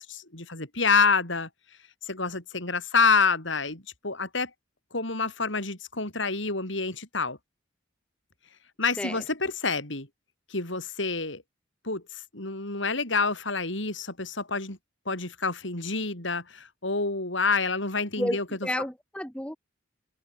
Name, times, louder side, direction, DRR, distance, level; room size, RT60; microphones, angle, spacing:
voice 1, 0.0-1.5 2.0-4.5 4.9-7.4 8.8-10.1 10.5-11.4 11.8-12.0 12.3-14.8 15.1-18.4, left 4 dB, 70° left, 5.6 m, -27 dB
voice 2, 18.2-19.6, left 1 dB, 5° left, 2.4 m, -31 dB
open air
head